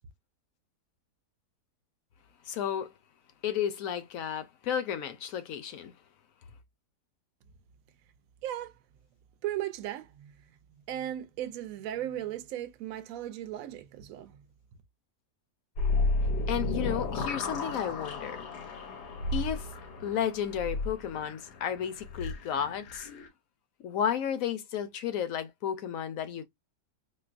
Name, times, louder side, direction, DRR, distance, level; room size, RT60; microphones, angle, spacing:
voice 1, 2.5-2.9 3.4-5.9 16.5-18.4 19.3-19.7 20.0-23.1 23.8-26.5, left 9 dB, 65° left, 0.9 m, -32 dB
voice 2, 8.4-8.7 9.4-10.3 10.9-14.4, right 12 dB, 70° right, 0.9 m, -36 dB
sound 1, 15.8-23.3, left 2 dB, 85° left, 1.4 m, -33 dB
4.5 x 2.0 x 2.5 m
omnidirectional pair, 1.7 m